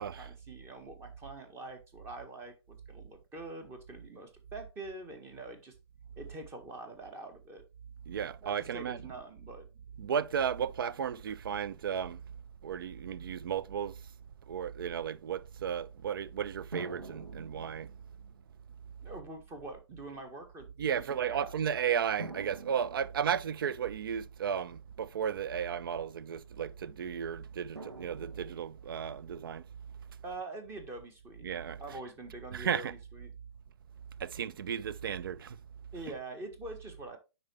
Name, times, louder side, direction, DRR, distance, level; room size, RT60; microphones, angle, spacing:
voice 1, 0.0-5.7 6.2-7.6 8.4-9.7 19.0-21.5 30.2-31.5 31.8-33.3 35.9-37.2, right 2 dB, 20° right, 1.5 m, -45 dB
voice 2, 8.1-9.0 10.0-12.2 12.6-13.9 14.5-17.9 20.8-29.6 31.4-32.0 32.5-32.9 34.2-35.6, right 8 dB, 55° right, 0.5 m, -34 dB
sound 1, 16.7-18.5 19.4-19.5 22.2-23.9 27.8-29.1, right 2 dB, 85° right, 1.2 m, -47 dB
9.7 x 4.1 x 3.3 m
figure-of-eight pair, 125°, 14 cm